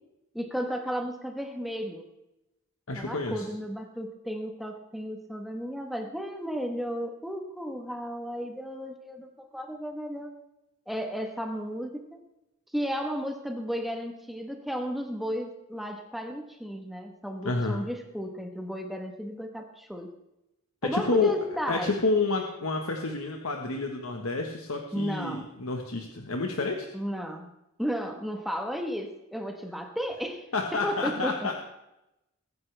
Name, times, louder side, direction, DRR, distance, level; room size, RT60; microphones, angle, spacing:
voice 1, 0.3-2.1 2.9-10.3 10.9-12.2 12.7-20.1 20.8-21.9 24.9-25.4 26.9-27.5 27.8-30.5 30.8-31.4, equal, ahead, 4 dB, 1.2 m, -34 dB
voice 2, 2.9-3.5 17.4-17.8 20.8-21.3 21.7-26.9 30.5-31.5, left 3 dB, 75° left, 2 dB, 1.4 m, -29 dB
21.0 x 9.7 x 3.4 m, 0.89 s
head